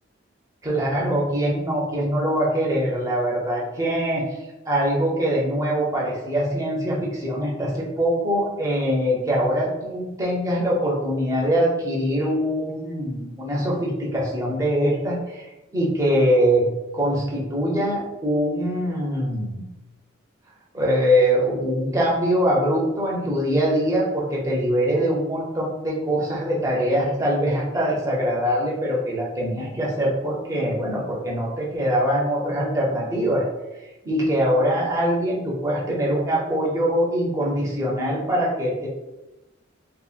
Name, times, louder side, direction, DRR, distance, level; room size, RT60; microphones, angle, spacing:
voice 1, 0.6-4.2 4.7-15.4 15.7-16.7 16.9-19.6 20.7-33.4 34.0-38.9, equal, 15° right, -4 dB, 0.5 m, -23 dB
2.6 x 2.3 x 2.4 m, 1.0 s
head